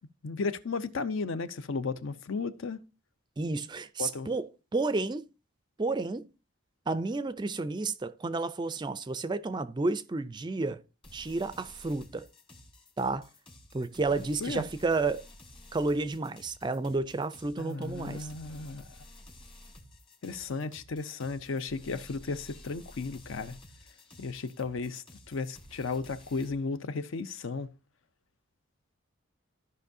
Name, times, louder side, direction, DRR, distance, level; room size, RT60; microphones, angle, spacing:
voice 1, 0.2-2.8 4.0-4.3 14.4-14.6 17.6-18.9 20.2-23.6 24.2-27.7, left 4 dB, 65° left, 0.5 m, -34 dB
voice 2, 3.4-5.3 5.8-6.3 6.9-10.8 11.1-12.3 13.0-13.3 13.7-15.2 15.7-18.3, right 3 dB, 20° right, 0.3 m, -31 dB
sound 1, 11.0-26.5, left 1 dB, 25° left, 1.2 m, -53 dB
14.0 x 5.3 x 2.6 m
head